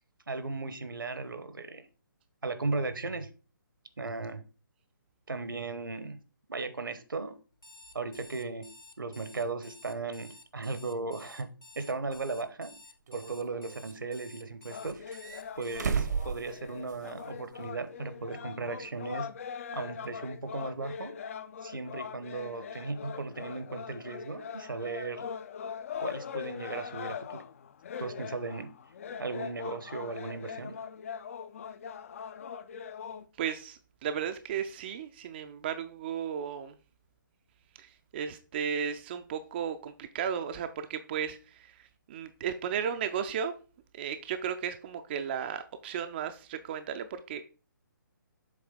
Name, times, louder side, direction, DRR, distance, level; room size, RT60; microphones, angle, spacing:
voice 1, 0.3-1.8 2.4-3.3 4.0-4.4 5.3-6.2 6.5-7.4 7.9-8.7 9.0-11.5 11.7-12.7 13.1-15.0 15.6-19.3 19.7-21.2 21.6-25.2 26.0-27.4 28.0-28.7 29.1-30.8, right 3 dB, 75° right, 11 dB, 1.0 m, -36 dB
Alarm, 7.5-15.9, left 2 dB, 80° left, 1.1 m, -53 dB
sound 1, 12.1-12.2 13.1-14.0 14.9-17.2 17.5-17.6 19.2-19.3, right 6 dB, 55° right, 0.8 m, -35 dB
sound 2, 14.7-33.2, left 7 dB, 40° left, 0.4 m, -42 dB
voice 2, 33.4-36.8 37.8-43.5 43.9-47.4, right 8 dB, 30° right, 8 dB, 0.4 m, -35 dB
7.3 x 3.4 x 4.9 m, 0.35 s
figure-of-eight pair, 140°, 11 cm